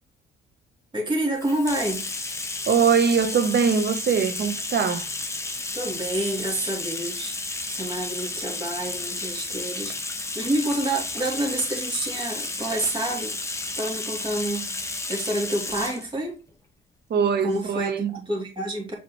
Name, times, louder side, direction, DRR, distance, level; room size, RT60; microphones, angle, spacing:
voice 1, 0.9-2.0 5.7-7.3 7.7-13.3 13.8-14.7 15.1-16.4 17.4-18.9, right 1 dB, 25° right, 2.9 m, -28 dB
Bathtub (filling or washing), 1.4-16.0, left 2 dB, 15° left, 1.1 m, -32 dB
voice 2, 2.7-5.1 17.1-18.1, right 6 dB, 55° right, 1.1 m, -22 dB
7.9 x 4.9 x 3.2 m
cardioid pair, 90°, 20 cm